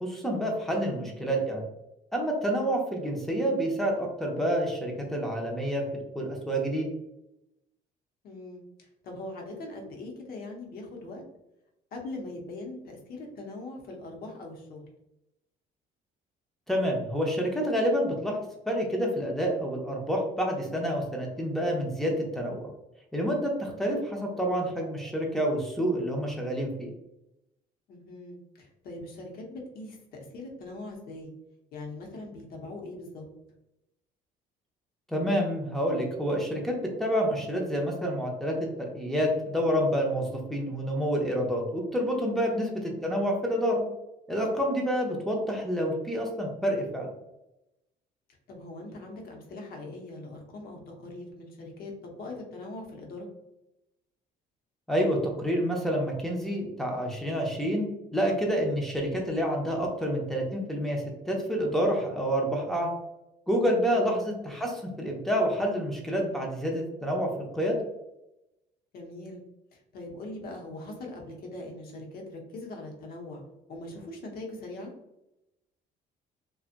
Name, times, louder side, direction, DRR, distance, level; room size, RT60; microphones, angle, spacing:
voice 1, 0.0-1.6 2.1-5.8 6.1-6.9 16.7-18.4 18.7-22.7 23.1-26.9 35.1-43.9 44.3-47.1 54.9-57.9 58.1-62.9 63.5-67.8, equal, ahead, -1 dB, 0.7 m, -28 dB
voice 2, 1.0-1.4 8.2-11.2 11.9-14.9 27.9-31.3 31.7-33.3 42.7-43.0 48.5-53.3 64.2-64.4 68.9-69.4 69.7-73.4 73.7-74.9, left 2 dB, 65° left, 1 dB, 0.9 m, -41 dB
2.7 x 2.3 x 2.5 m, 0.89 s
cardioid pair, 110°, 17 cm